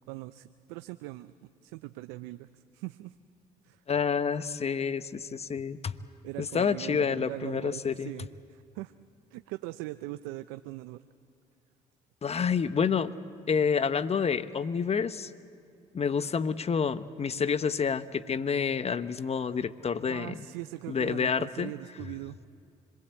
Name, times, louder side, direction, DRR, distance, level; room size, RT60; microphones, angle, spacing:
voice 1, 0.1-1.3 1.6-3.1 3.6-3.8 6.2-8.9 9.3-11.0 20.1-22.4, right 18 dB, 90° right, 11 dB, 0.5 m, -41 dB
voice 2, 3.9-5.9 6.4-8.1 12.2-13.1 13.5-15.3 15.9-20.4 20.9-21.7, left 6 dB, 35° left, 13 dB, 1.0 m, -28 dB
26.0 x 22.0 x 8.2 m, 2.4 s
supercardioid pair, 65°, 17 cm